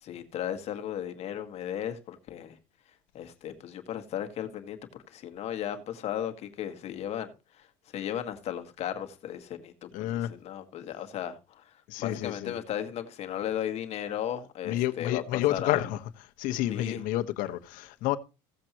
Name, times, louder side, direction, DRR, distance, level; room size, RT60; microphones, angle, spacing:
voice 1, 0.0-2.6 3.1-15.8 16.7-17.0, left 10 dB, 40° left, 1.8 m, -36 dB
voice 2, 9.9-10.3 11.9-12.5 14.6-16.0 16.4-18.2, left 14 dB, 60° left, 1.2 m, -29 dB
16.5 x 7.6 x 3.0 m
cardioid pair, 140°, 16 cm